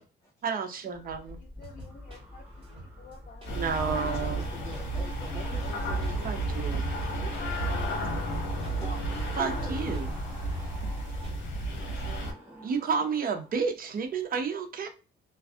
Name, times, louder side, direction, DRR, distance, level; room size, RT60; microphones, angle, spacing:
voice 1, 0.4-1.4 3.5-4.4 6.2-6.8 9.4-10.1 12.6-14.9, right 6 dB, 45° right, 5 dB, 0.6 m, -31 dB
sound 1, 0.9-13.6 13.9-14.3, equal, 10° right, 1.1 m, -48 dB
voice 2, 1.4-3.6 7.1-8.0, left 6 dB, 45° left, -1 dB, 0.6 m, -45 dB
sound 2, 1.6-11.9, right 1 dB, 30° right, 1.3 m, -49 dB
sound 3, 3.5-12.3, right 1 dB, 70° left, 0.8 m, -32 dB
voice 3, 3.9-6.3 8.8-9.9 11.6-12.6 13.2-13.3, equal, 15° left, -4 dB, 0.8 m, -45 dB
2.5 x 2.3 x 2.3 m, 0.33 s
cardioid pair, 90°, 20 cm